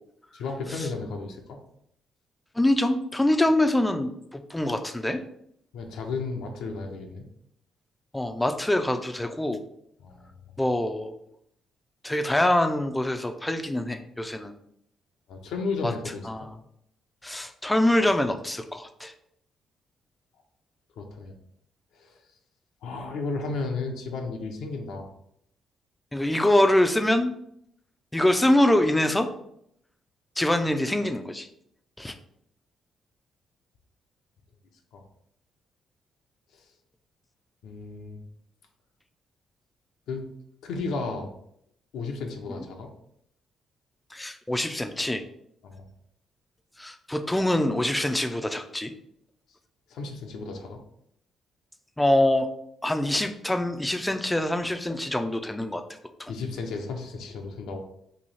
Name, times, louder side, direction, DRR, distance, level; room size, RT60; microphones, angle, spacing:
voice 1, 0.3-1.6 5.7-7.3 10.0-10.3 15.3-16.5 21.0-21.3 21.9-22.2 22.8-25.1 34.9-35.0 36.5-36.7 37.6-38.2 40.1-40.2 40.6-41.3 41.9-42.9 45.6-45.8 49.9-50.8 56.3-57.8, left 3 dB, 80° left, 2 dB, 0.6 m, -33 dB
voice 2, 2.6-5.2 8.1-9.6 10.6-11.2 12.0-14.5 15.8-15.9 16.3-16.5 17.2-19.1 26.1-27.3 28.1-29.3 30.4-31.5 32.0-32.1 44.1-45.2 46.8-48.9 52.0-52.5 52.8-55.8 56.2-56.3, left 1 dB, 10° left, 7 dB, 0.4 m, -24 dB
3.1 x 2.7 x 4.0 m, 0.72 s
cardioid pair, 90°, 0 cm